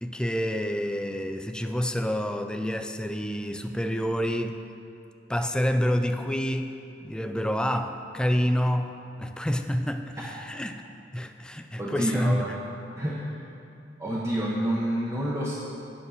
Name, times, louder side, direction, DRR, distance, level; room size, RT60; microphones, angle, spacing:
voice 1, 0.0-4.6 5.3-8.9 9.2-10.8 11.1-12.4, equal, 5° left, 7 dB, 0.4 m, -28 dB
voice 2, 11.8-12.6 13.0-13.4 14.0-15.5, right 1 dB, 15° right, -6 dB, 0.9 m, -28 dB
9.3 x 6.4 x 5.6 m, 2.7 s
head